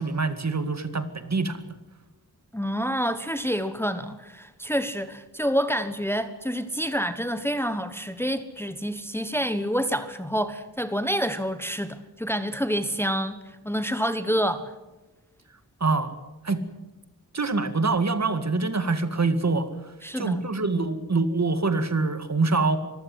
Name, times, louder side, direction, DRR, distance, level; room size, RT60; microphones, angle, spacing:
voice 1, 0.0-1.7 15.8-16.1 16.4-16.6 17.3-22.8, right 3 dB, 45° right, 10 dB, 2.0 m, -25 dB
voice 2, 2.5-14.7 20.0-20.4, equal, 5° left, 10 dB, 1.2 m, -28 dB
24.5 x 15.0 x 9.5 m, 1.1 s
wide cardioid pair, 85°, 38 cm